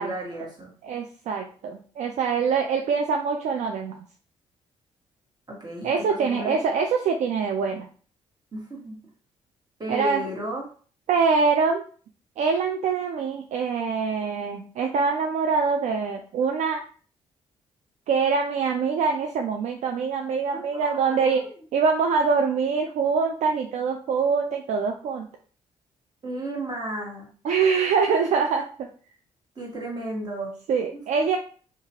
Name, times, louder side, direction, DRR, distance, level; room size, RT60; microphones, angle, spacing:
voice 1, 0.0-0.7 5.5-6.6 8.5-9.0 9.8-10.6 20.5-21.5 26.2-27.9 29.5-30.5 30.9-31.4, right 1 dB, 30° right, -3 dB, 1.4 m, -34 dB
voice 2, 0.8-4.0 5.8-7.9 9.9-10.2 11.1-11.8 12.4-16.8 18.1-25.3 27.4-28.9 30.7-31.4, right 5 dB, 65° right, 3 dB, 0.4 m, -24 dB
2.7 x 2.4 x 2.9 m, 0.43 s
supercardioid pair, 60°, 13 cm